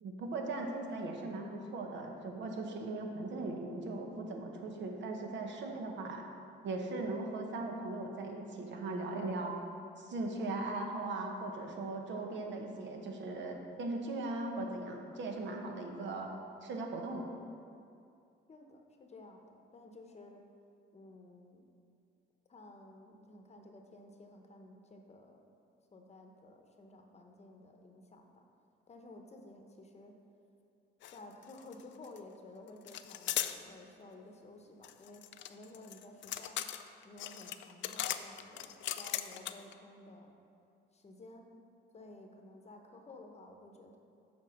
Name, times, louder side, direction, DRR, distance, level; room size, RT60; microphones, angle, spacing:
voice 1, 0.0-6.2 6.6-9.5 10.0-16.3 16.6-17.3, right 2 dB, 65° right, 2 dB, 1.0 m, -39 dB
voice 2, 18.5-20.4 20.9-21.7 22.5-25.5 25.9-28.4 28.9-30.1 31.1-35.2 35.5-36.6 37.0-40.3 40.9-41.5 41.9-44.0, left 2 dB, 35° left, 3 dB, 0.9 m, -54 dB
sound 1, 31.0-31.2 31.4-32.2 32.9-33.6 34.8-39.7, left 12 dB, 70° left, 0.4 m, -38 dB
7.5 x 4.5 x 5.8 m, 2.5 s
cardioid pair, 90°, 20 cm